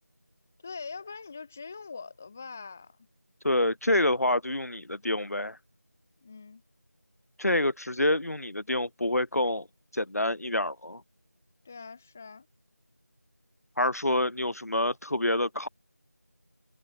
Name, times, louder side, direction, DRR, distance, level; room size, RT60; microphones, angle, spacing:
voice 1, 0.6-3.0 6.2-6.6 11.6-12.5, left 5 dB, 5° left, 3.0 m, -42 dB
voice 2, 3.4-5.6 7.4-9.7 9.9-11.0 13.8-15.7, left 1 dB, 65° left, 0.9 m, -27 dB
figure-of-eight pair, 180°, 9 cm